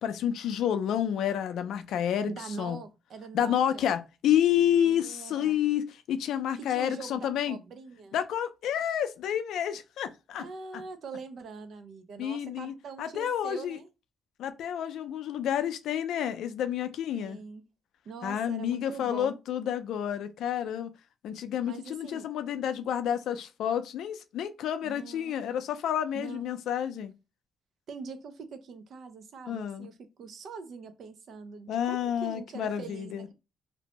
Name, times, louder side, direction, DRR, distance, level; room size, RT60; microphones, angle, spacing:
voice 1, 0.0-2.3 2.6-2.8 3.3-7.6 8.1-10.4 10.7-10.8 12.2-13.8 14.4-17.4 18.2-20.9 21.2-27.1 29.5-29.9 31.7-33.3, left 10 dB, 80° left, 0.4 m, -29 dB
voice 2, 2.3-3.9 4.8-5.6 6.6-8.2 10.4-13.9 17.1-17.6 18.0-19.4 21.6-22.3 24.8-25.4 26.1-26.5 27.9-33.3, right 5 dB, 60° right, 0.5 m, -43 dB
2.6 x 2.1 x 2.8 m
cardioid pair, 90°, 0 cm